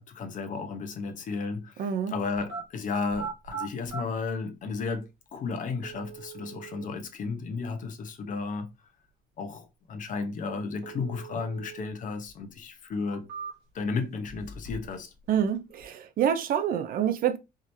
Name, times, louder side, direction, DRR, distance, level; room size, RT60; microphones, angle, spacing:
voice 1, 0.0-8.7 9.4-13.3 13.7-15.1, left 4 dB, 50° left, 1.0 m, -33 dB
voice 2, 1.8-2.1 15.3-17.4, right 9 dB, 60° right, 0.6 m, -27 dB
sound 1, 2.3-2.6 3.1-4.0 5.0-5.1 5.8-6.9 10.8-11.9 12.2-12.3 12.9-13.8 14.2-15.0 15.2-15.8, right 5 dB, 80° right, 2.0 m, -40 dB
4.9 x 3.0 x 2.7 m
cardioid pair, 110°, 17 cm